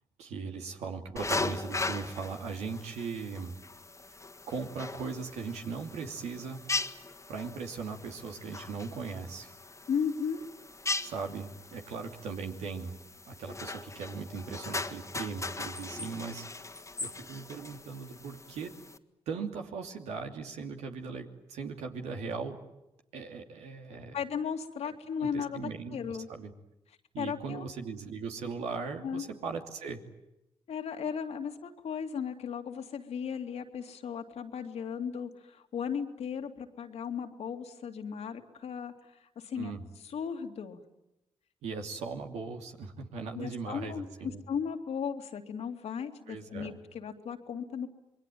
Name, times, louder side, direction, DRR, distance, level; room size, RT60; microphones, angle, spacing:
voice 1, 0.2-3.5 4.5-6.7 7.3-9.5 11.0-12.9 13.3-18.7 19.3-22.6 23.1-24.2 25.2-26.5 27.1-30.0 39.6-39.9 41.6-44.4 46.3-46.8, right 5 dB, 85° right, 3 dB, 2.9 m, -39 dB
sound 1, 1.2-19.0, left 3 dB, 25° left, 1.8 m, -39 dB
voice 2, 9.9-10.4 24.1-26.3 27.2-27.7 29.0-29.3 30.7-38.9 39.2-39.7 40.0-40.8 43.3-47.9, left 7 dB, 75° left, 5 dB, 2.6 m, -36 dB
27.0 x 21.5 x 9.3 m, 0.91 s
supercardioid pair, 50°, 11 cm